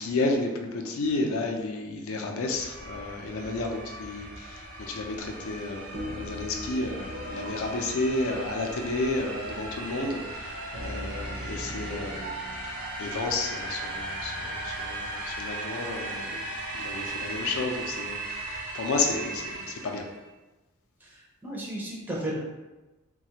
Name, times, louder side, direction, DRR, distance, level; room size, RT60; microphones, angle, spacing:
voice 1, 0.0-12.4 12.6-20.1, left 2 dB, 65° left, 2 dB, 0.4 m, -32 dB
sound 1, 2.5-20.2, right 2 dB, 75° right, 0.9 m, -37 dB
sound 2, 5.9-15.5, equal, 55° right, 0.5 m, -42 dB
voice 2, 21.0-22.4, right 1 dB, 10° right, -5 dB, 0.5 m, -34 dB
3.2 x 2.3 x 2.8 m, 1.1 s
head